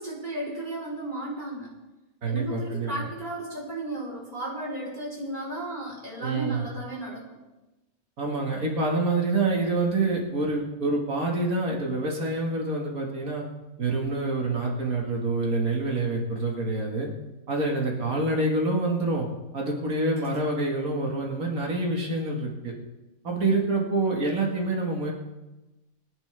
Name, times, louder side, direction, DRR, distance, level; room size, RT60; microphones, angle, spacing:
voice 1, 0.0-1.7 2.2-7.3, right 1 dB, 35° right, -4 dB, 4.2 m, -34 dB
voice 2, 2.2-3.1 6.2-6.7 8.2-13.4 13.8-17.1 17.5-19.3 19.5-22.7 23.2-25.1, right 2 dB, 90° right, -1 dB, 2.3 m, -27 dB
22.5 x 10.5 x 3.4 m, 1.1 s
omnidirectional pair, 1.5 m